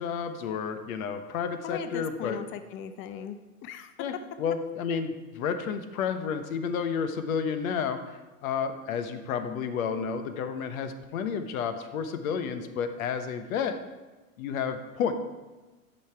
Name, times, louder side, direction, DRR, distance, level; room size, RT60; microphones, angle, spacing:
voice 1, 0.0-2.4 4.0-4.1 4.4-13.8 14.4-15.1, left 6 dB, 70° left, 9 dB, 1.1 m, -31 dB
voice 2, 1.6-3.9, left 7 dB, 30° left, 10 dB, 0.5 m, -38 dB
12.0 x 5.7 x 4.6 m, 1.2 s
hypercardioid pair, 110°, 42 cm